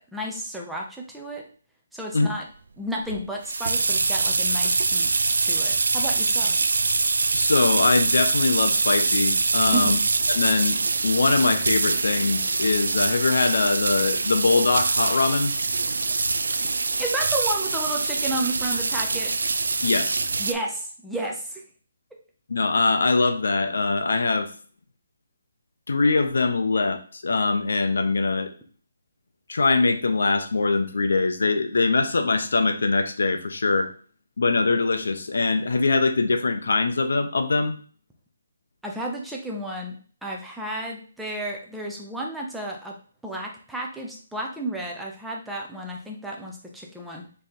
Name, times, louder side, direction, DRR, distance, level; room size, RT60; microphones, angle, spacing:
voice 1, 0.1-1.5 1.9-2.4 2.8-5.1 5.4-6.6 9.7-9.9 16.6-16.7 17.0-19.3 20.4-21.6 38.8-40.0 40.2-42.9 43.2-47.3, right 1 dB, ahead, -2 dB, 0.5 m, -32 dB
sound 1, 3.1-20.5, right 3 dB, 85° right, 0.4 m, -24 dB
voice 2, 7.3-10.0 10.4-10.8 11.0-15.5 19.8-20.3 22.5-24.5 25.9-28.5 29.5-33.9 34.4-37.8, left 3 dB, 75° left, 7 dB, 0.8 m, -22 dB
3.7 x 3.4 x 4.2 m, 0.41 s
hypercardioid pair, 180°, 0 cm